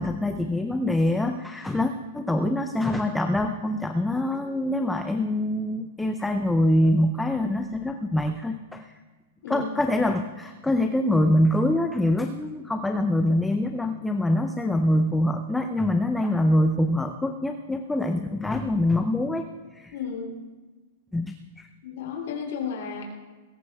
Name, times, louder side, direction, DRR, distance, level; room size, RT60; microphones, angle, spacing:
voice 1, 0.0-8.9 9.5-19.4 19.7-19.9 21.1-21.7, left 1 dB, 5° left, 6 dB, 0.5 m, -24 dB
voice 2, 19.9-20.4 21.8-23.0, left 6 dB, 70° left, -1 dB, 3.0 m, -33 dB
21.5 x 17.5 x 2.3 m, 1.3 s
supercardioid pair, 165°, 0 cm